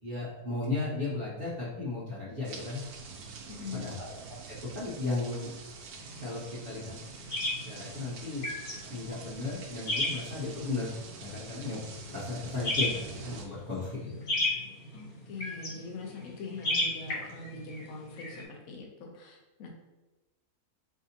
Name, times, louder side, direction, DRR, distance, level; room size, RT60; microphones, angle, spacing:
voice 1, 0.0-2.8 3.7-4.1 4.5-5.6 6.2-7.0 7.5-8.5 8.9-11.8 12.1-14.2, left 3 dB, 40° right, -9 dB, 1.1 m, -35 dB
sound 1, 2.4-13.4, right 4 dB, 75° right, 1.1 m, -46 dB
voice 2, 3.5-4.0 14.9-19.7, left 3 dB, 70° left, 0 dB, 1.2 m, -42 dB
sound 2, 6.0-18.4, left 1 dB, 45° left, 0.8 m, -36 dB
4.8 x 2.7 x 2.8 m, 1.1 s
omnidirectional pair, 1.6 m